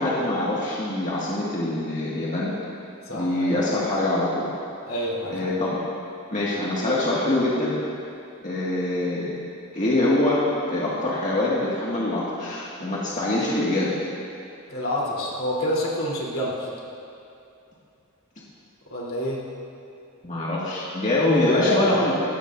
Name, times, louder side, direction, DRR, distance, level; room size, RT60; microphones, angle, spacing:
voice 1, 0.0-2.5 3.1-4.5 5.3-5.8 6.3-7.8 8.4-9.3 9.7-10.4 10.7-13.9 20.2-22.1, left 2 dB, 35° left, -7 dB, 2.0 m, -24 dB
voice 2, 3.0-3.6 4.9-5.5 14.7-16.7 18.9-19.5 21.5-22.1, equal, 70° left, -5 dB, 3.5 m, -28 dB
20.5 x 17.0 x 2.7 m, 2.7 s
head